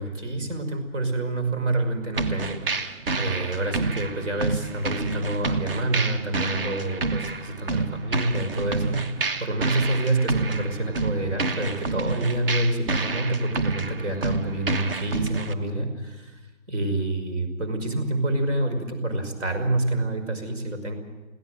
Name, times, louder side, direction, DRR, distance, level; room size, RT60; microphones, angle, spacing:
voice 1, 0.0-16.4 16.7-20.9, right 2 dB, 70° right, 8 dB, 5.5 m, -27 dB
sound 1, 2.1-15.5, right 3 dB, 45° right, 1.4 m, -29 dB
22.5 x 17.0 x 7.7 m, 1.2 s
hypercardioid pair, 155°, 39 cm